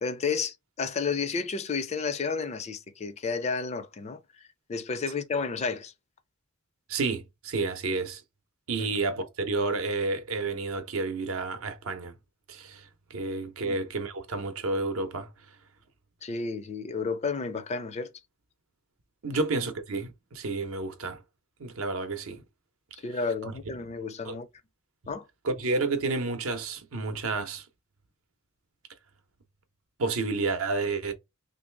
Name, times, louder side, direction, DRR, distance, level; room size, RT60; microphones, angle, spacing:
voice 1, 0.0-4.2 4.7-5.9 8.8-8.9 13.6-13.8 16.2-18.1 19.3-19.4 23.0-24.5 25.1-25.2, left 5 dB, 30° left, 0.4 m, -31 dB
voice 2, 6.9-8.2 8.7-12.1 12.5-15.3 19.2-21.2 21.6-22.4 23.4-23.5 24.2-24.3 25.4-27.6 30.0-31.1, right 3 dB, 70° right, 0.7 m, -30 dB
3.1 x 2.6 x 3.2 m
head